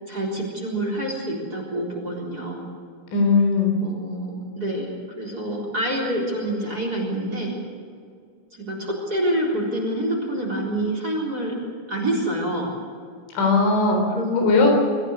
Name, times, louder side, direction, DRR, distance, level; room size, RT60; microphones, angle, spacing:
voice 1, 0.1-2.6 3.8-7.6 8.7-11.6 11.9-12.7 14.1-14.4, right 1 dB, 20° right, 0 dB, 3.8 m, -27 dB
voice 2, 3.1-3.7 13.3-14.1 14.3-14.7, left 3 dB, 90° left, 2 dB, 6.4 m, -18 dB
24.0 x 15.0 x 8.3 m, 2.2 s
omnidirectional pair, 5.3 m